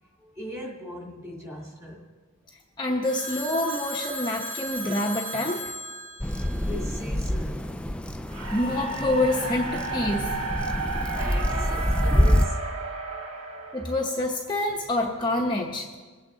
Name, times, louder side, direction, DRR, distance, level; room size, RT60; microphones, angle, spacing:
voice 1, 0.2-2.0 6.6-7.9 11.2-12.6 13.1-13.2 13.6-13.7, equal, 15° right, -2 dB, 2.6 m, -39 dB
voice 2, 2.8-5.6 8.5-10.3 13.7-15.9, left 1 dB, 20° left, -1 dB, 1.0 m, -27 dB
Telephone, 3.0-7.3, equal, 50° right, 3.8 m, -36 dB
sound 1, 6.2-12.4, equal, 5° left, 0.5 m, -26 dB
sound 2, 8.3-14.5, right 3 dB, 65° right, 1.5 m, -33 dB
22.0 x 8.8 x 4.0 m, 1.4 s
head